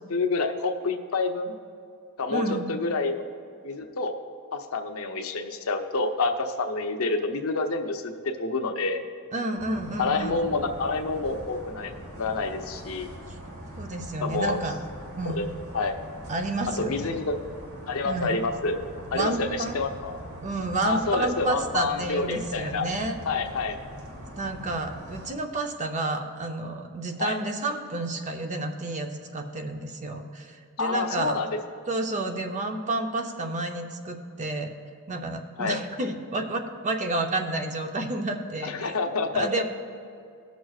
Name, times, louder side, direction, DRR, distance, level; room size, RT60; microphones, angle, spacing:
voice 1, 0.1-1.5 2.2-3.2 3.6-4.1 4.5-9.0 10.0-13.1 14.2-14.6 15.2-15.5 15.7-15.9 16.8-17.4 17.9-18.8 19.1-20.2 20.8-22.9 23.3-23.8 27.2-27.4 30.8-31.6 35.6-35.8 38.6-39.5, left 3 dB, 65° left, 5 dB, 0.7 m, -28 dB
voice 2, 2.3-2.8 9.3-10.4 13.8-14.8 15.2-15.5 16.3-17.2 18.0-18.4 19.1-19.8 20.4-23.2 24.4-31.4 31.9-34.8 35.1-39.0 39.3-39.6, right 2 dB, 35° right, 5 dB, 0.6 m, -30 dB
sound 1, 9.6-25.3, equal, 65° right, 1.2 m, -42 dB
18.5 x 6.2 x 2.4 m, 2.4 s
head